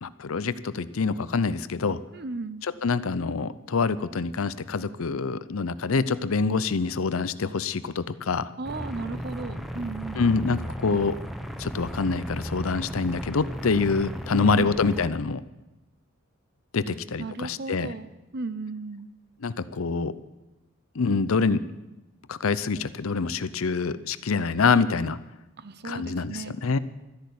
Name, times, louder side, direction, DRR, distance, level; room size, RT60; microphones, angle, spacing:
voice 1, 0.0-2.0 2.6-8.5 10.2-11.2 11.6-15.4 16.7-17.9 19.4-20.1 21.0-21.6 22.3-25.2 25.8-26.8, left 4 dB, 80° left, 15 dB, 0.6 m, -26 dB
voice 2, 2.1-2.6 8.6-10.3 14.3-14.7 16.8-19.1 25.6-26.5, right 3 dB, 50° right, 13 dB, 0.7 m, -36 dB
sound 1, 8.6-15.1, equal, ahead, 0.8 m, -35 dB
13.0 x 10.5 x 8.4 m, 1.0 s
head